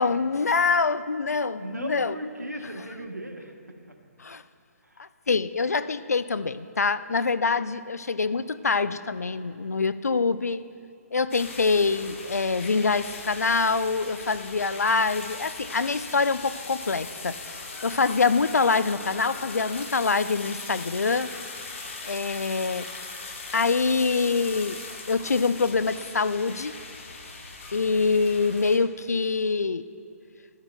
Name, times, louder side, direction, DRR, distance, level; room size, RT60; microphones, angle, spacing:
voice 1, 0.0-2.1 4.2-4.4 5.0-10.6 11.1-21.3 22.0-22.9 23.5-24.8 25.1-26.7 27.7-29.9, left 4 dB, 75° left, 14 dB, 0.4 m, -25 dB
voice 2, 1.6-4.0 4.8-5.0, right 1 dB, 90° right, 4 dB, 1.1 m, -37 dB
sound 1, 11.3-28.8, left 3 dB, 50° left, 1.1 m, -40 dB
12.5 x 12.5 x 2.2 m, 2.4 s
figure-of-eight pair, 140°, 9 cm